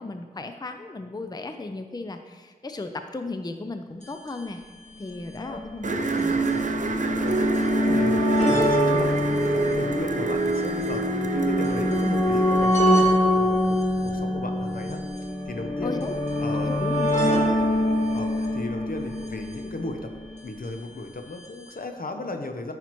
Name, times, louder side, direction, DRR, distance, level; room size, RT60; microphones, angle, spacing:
voice 1, 0.0-4.6 5.0-6.4 15.8-16.1 16.6-17.1, left 3 dB, 25° left, 7 dB, 0.5 m, -35 dB
sound 1, 4.0-4.1 4.3-4.4 5.2-20.5 21.4-21.5 21.7-21.8, left 1 dB, 45° left, 1.8 m, -25 dB
sound 2, 5.8-12.7, right 3 dB, 50° right, 0.6 m, -26 dB
voice 2, 7.8-15.0 15.4-16.0 16.4-16.8 18.1-20.1 20.4-22.7, left 2 dB, 65° left, 5 dB, 0.7 m, -35 dB
9.1 x 5.8 x 3.0 m, 1.4 s
cardioid pair, 40°, 16 cm